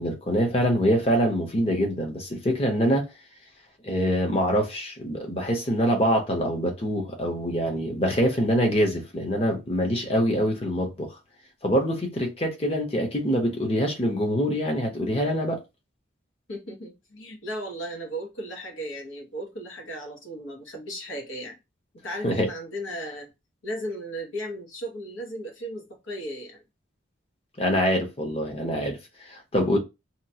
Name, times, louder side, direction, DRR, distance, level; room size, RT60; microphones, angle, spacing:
voice 1, 0.0-3.0 3.8-11.1 11.6-15.6 22.2-22.5 27.6-29.0 29.3-29.8, equal, 30° left, 0.7 m, -24 dB
voice 2, 16.5-21.6 22.0-23.3 23.6-26.6, equal, 90° left, 1.1 m, -36 dB
2.9 x 2.3 x 2.7 m
head